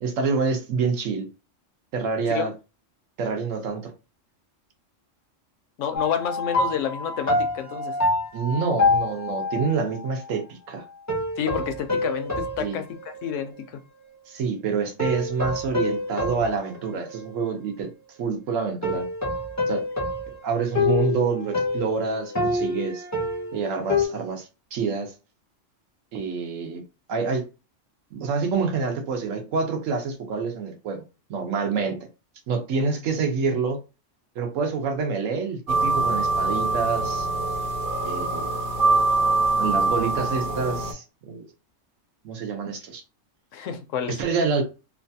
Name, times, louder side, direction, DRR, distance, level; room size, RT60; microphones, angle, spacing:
voice 1, 0.0-1.3 1.9-2.5 3.2-3.9 8.3-10.8 12.6-12.8 14.3-17.9 18.2-19.1 19.7-19.8 20.4-23.0 23.5-25.1 26.1-26.8 27.1-27.4 28.1-31.0 31.3-32.1 32.5-33.8 34.3-37.3 38.0-38.4 38.9-39.0 39.6-41.4 42.2-43.0 44.1-44.6, right 5 dB, 85° right, 1.2 m, -27 dB
voice 2, 5.8-8.0 11.4-13.8 43.5-44.2, left 8 dB, 75° left, 0.9 m, -29 dB
sound 1, 5.9-9.8 11.1-13.6 14.1-14.2 15.0-17.5 18.8-24.1, left 3 dB, 20° left, 0.5 m, -27 dB
sound 2, 35.7-40.9, right 3 dB, 50° right, 0.9 m, -23 dB
3.2 x 2.2 x 2.6 m
omnidirectional pair, 1.3 m